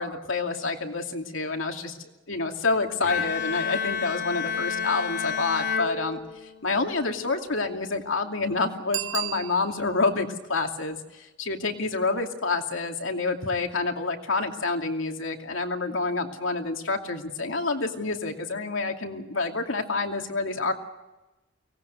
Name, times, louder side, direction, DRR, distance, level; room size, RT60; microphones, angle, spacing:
voice 1, 0.0-6.2 6.6-20.7, left 3 dB, 85° left, 3 dB, 2.6 m, -28 dB
Bowed string instrument, 3.0-6.8, left 6 dB, 65° left, 2.9 m, -30 dB
Bicycle bell, 8.9-10.1 15.5-15.6, right 14 dB, 90° right, 0.7 m, -33 dB
24.0 x 18.5 x 8.1 m, 1.0 s
head